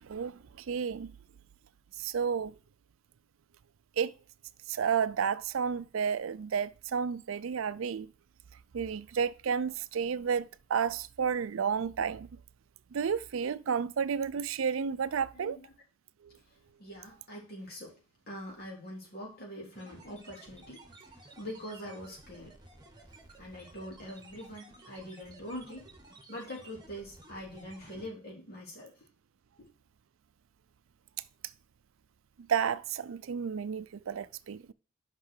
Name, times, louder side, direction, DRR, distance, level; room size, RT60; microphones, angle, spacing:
voice 1, 0.1-0.4 0.7-1.1 2.0-2.5 4.0-4.1 4.7-8.1 8.7-12.3 12.9-15.6 32.5-34.7, right 7 dB, 70° right, 0.4 m, -31 dB
voice 2, 15.3-15.7 16.3-16.4 16.8-18.0 18.3-22.5 23.4-25.9 26.3-29.1 29.6-29.7, equal, 50° left, 3.6 m, -44 dB
sound 1, 19.7-28.1, right 2 dB, 20° right, 1.6 m, -54 dB
5.7 x 5.6 x 6.4 m
head